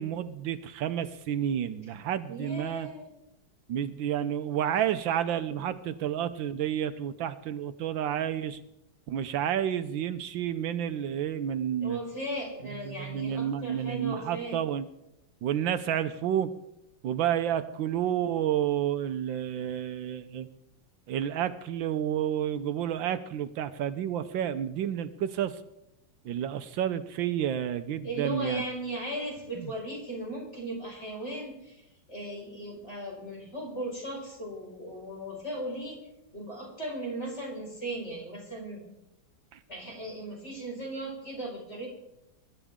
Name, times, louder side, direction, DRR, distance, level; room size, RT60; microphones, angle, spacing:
voice 1, 0.0-2.9 3.7-8.6 9.1-12.0 12.7-14.9 15.4-16.5 17.0-20.5 21.1-25.6 26.2-28.6 29.6-29.7 39.5-39.6, right 10 dB, 75° right, 11 dB, 1.4 m, -30 dB
voice 2, 2.3-3.1 11.8-14.6 28.0-31.8 32.1-36.1 36.3-38.9 39.7-41.9, right 1 dB, 35° left, -2 dB, 5.3 m, -37 dB
24.0 x 12.0 x 3.7 m, 0.89 s
omnidirectional pair, 2.2 m